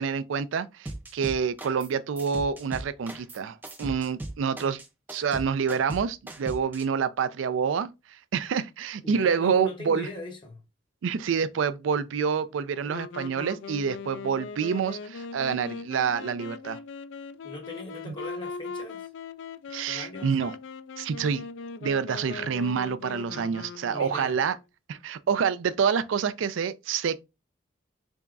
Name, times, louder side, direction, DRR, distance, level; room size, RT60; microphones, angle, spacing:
voice 1, 0.0-4.8 5.1-7.9 8.3-10.1 11.0-16.8 18.1-18.2 19.7-20.6 21.0-21.5 21.8-24.6 24.9-27.2, right 6 dB, 90° right, 0.4 m, -27 dB
sound 1, 0.8-1.9 2.2-6.8, right 1 dB, 10° right, 0.3 m, -38 dB
voice 2, 9.0-10.6 17.4-19.1 19.9-20.3 23.3-23.6 23.9-24.4, left 1 dB, 25° left, 0.7 m, -40 dB
Wind instrument woodwind instrument, 12.8-24.5, left 5 dB, 75° left, 0.3 m, -40 dB
4.0 x 3.5 x 2.2 m
head